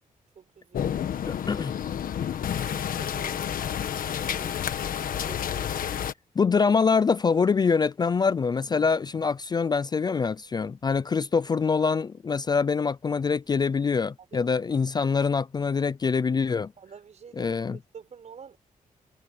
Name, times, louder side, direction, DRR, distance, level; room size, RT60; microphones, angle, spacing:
voice 1, 0.3-1.4 2.7-4.6 5.0-5.8 14.3-14.5 16.8-18.6, right 6 dB, 50° right, 5.9 m, -49 dB
sound 1, 0.7-6.1, left 9 dB, 75° left, 1.3 m, -30 dB
voice 2, 1.3-1.7 6.4-16.7 17.4-17.8, left 5 dB, 30° left, 0.4 m, -24 dB
wide cardioid pair, 150°, 14 cm